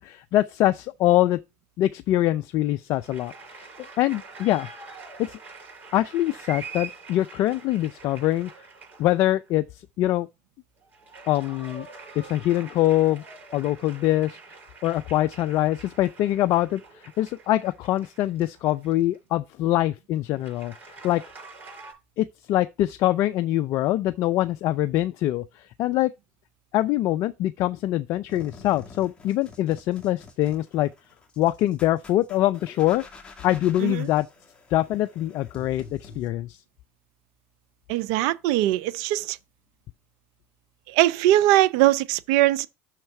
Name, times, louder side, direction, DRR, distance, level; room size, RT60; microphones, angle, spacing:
voice 1, 0.0-1.4 1.8-3.7 4.0-4.7 5.2-5.4 5.9-8.5 9.0-9.6 10.0-10.3 11.3-11.9 12.2-13.2 13.5-14.4 14.8-20.7 21.0-21.2 22.2-26.1 26.7-30.9 31.4-33.0 33.4-34.3 34.7-36.6, left 14 dB, 55° left, 0.4 m, -24 dB
sound 1, 2.9-9.5 10.8-19.2 20.4-21.9, right 4 dB, 35° right, 5.5 m, -45 dB
sound 2, 28.3-36.3, left 4 dB, 15° left, 2.1 m, -48 dB
voice 2, 37.9-39.4 40.9-42.7, right 15 dB, 70° right, 0.5 m, -21 dB
6.4 x 4.4 x 5.8 m
hypercardioid pair, 90°, 6 cm